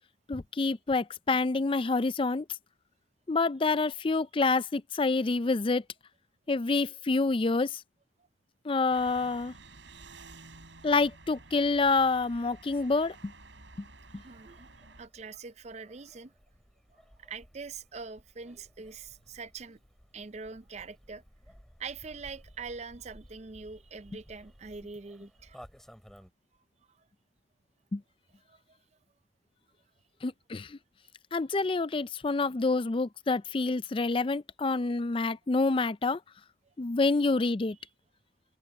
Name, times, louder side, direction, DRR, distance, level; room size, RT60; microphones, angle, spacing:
voice 1, 0.3-2.4 3.3-5.8 6.5-7.8 8.6-9.5 10.8-13.3 13.8-13.9 14.1-14.2 27.9-28.0 30.2-30.8 31.3-36.2 36.8-37.8, left 3 dB, 25° left, 0.4 m, -27 dB
sound 1, 8.9-15.1, right 3 dB, 70° right, 5.7 m, -52 dB
sound 2, 9.6-26.3, equal, ahead, 3.7 m, -58 dB
voice 2, 14.1-14.7 15.0-16.3 16.9-19.8 20.1-21.2 21.8-25.6 28.5-28.8, right 4 dB, 35° right, 0.5 m, -43 dB
head